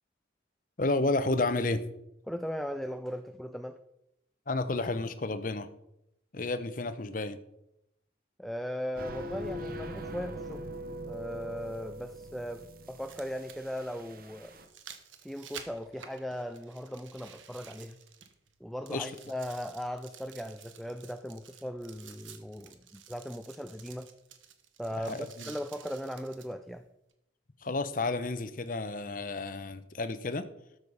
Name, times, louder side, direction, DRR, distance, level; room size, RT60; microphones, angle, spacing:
voice 1, 0.8-1.8 4.5-5.7 6.3-7.4 18.9-19.1 25.0-25.5 27.6-30.5, left 2 dB, 45° left, 12 dB, 0.8 m, -31 dB
voice 2, 2.3-3.8 8.4-10.6 11.0-14.5 15.2-18.0 18.6-24.1 24.8-26.8, equal, ahead, 9 dB, 0.3 m, -38 dB
sound 1, 9.0-14.7, equal, 50° right, 1.2 m, -42 dB
sound 2, 11.6-11.7 12.8-18.6 18.9-26.5 27.1-27.2, right 8 dB, 85° right, 1.2 m, -52 dB
13.0 x 6.5 x 5.4 m, 0.83 s
head